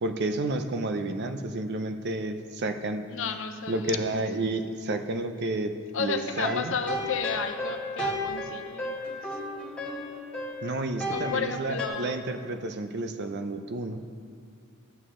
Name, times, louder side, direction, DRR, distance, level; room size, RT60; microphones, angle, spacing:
voice 1, 0.0-3.1 3.7-5.7 6.0-6.7 10.6-14.0, right 2 dB, 55° right, 8 dB, 0.6 m, -30 dB
voice 2, 3.1-4.2 5.9-9.3 11.1-12.2, left 5 dB, 65° left, 7 dB, 0.7 m, -33 dB
sound 1, 6.3-11.9, left 1 dB, 5° left, 1.6 m, -34 dB
12.5 x 8.7 x 3.7 m, 2.3 s
head